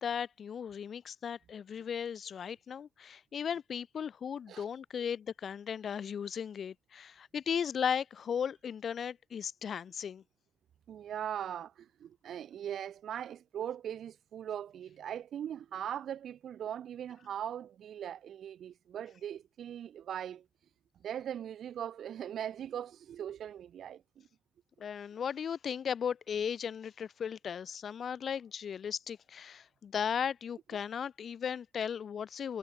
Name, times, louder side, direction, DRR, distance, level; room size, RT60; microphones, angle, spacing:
voice 1, 0.0-10.2 24.8-32.6, left 7 dB, 55° left, 0.8 m, -36 dB
voice 2, 10.9-20.5 21.0-24.3, right 9 dB, 65° right, 2.2 m, -40 dB
cardioid pair, 85°, 0 cm